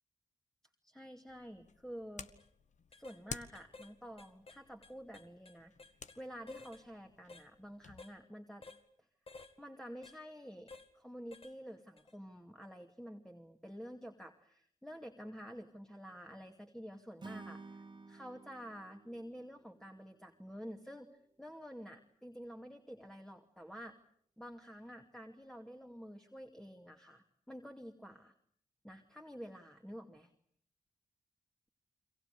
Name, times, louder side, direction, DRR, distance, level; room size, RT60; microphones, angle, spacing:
voice 1, 0.8-2.3 3.0-5.7 6.2-8.7 9.6-10.7 10.9-24.0 24.4-28.3 28.8-30.3, equal, 5° left, 2 dB, 2.4 m, -49 dB
sound 1, 1.3-8.0, left 6 dB, 65° left, 1.3 m, -53 dB
sound 2, 2.3-2.5 2.9-3.2 3.6-3.9 4.2-6.2 6.5-6.8 7.3-7.5 8.0-8.2 8.6-8.8 9.3-9.5 10.0-10.2 10.7-10.9 11.3-11.6 12.0-12.1, left 3 dB, 45° left, 2.1 m, -54 dB
Acoustic guitar / Strum, 17.2-20.5, right 3 dB, 35° right, 1.9 m, -52 dB
30.0 x 23.5 x 6.8 m, 0.64 s
supercardioid pair, 45°, 14 cm